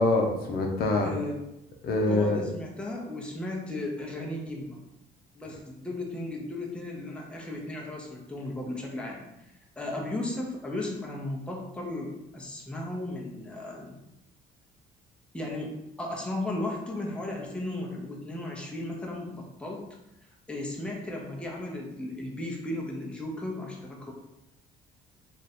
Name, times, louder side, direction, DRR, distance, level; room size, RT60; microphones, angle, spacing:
voice 1, 0.0-1.1 1.8-2.4, left 2 dB, 65° left, 1 dB, 0.7 m, -24 dB
voice 2, 1.0-1.3 1.9-4.8 5.3-9.3 9.8-14.0 15.3-19.8 20.5-24.1, left 1 dB, 5° left, -2 dB, 0.8 m, -35 dB
3.1 x 2.5 x 4.2 m, 0.88 s
cardioid pair, 110°, 17 cm